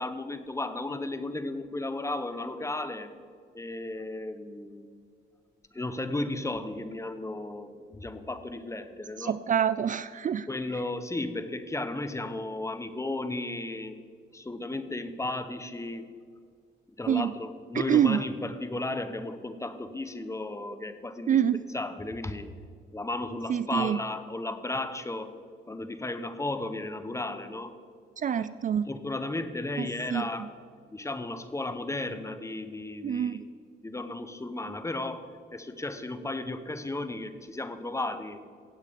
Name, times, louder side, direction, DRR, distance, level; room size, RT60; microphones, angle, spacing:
voice 1, 0.0-3.1 3.5-4.9 5.7-9.4 10.5-14.0 14.3-16.1 17.0-21.4 21.7-22.5 22.9-25.3 25.7-27.7 28.4-28.5 28.9-30.5 30.9-33.4 33.8-38.5, left 2 dB, 15° left, 11 dB, 0.9 m, -34 dB
voice 2, 9.2-10.5 17.1-17.3 17.7-18.2 21.3-21.6 23.5-24.0 28.2-28.9 29.8-30.3 33.0-33.4, right 9 dB, 40° right, 14 dB, 0.4 m, -26 dB
16.0 x 8.3 x 5.1 m, 2.1 s
cardioid pair, 90°, 20 cm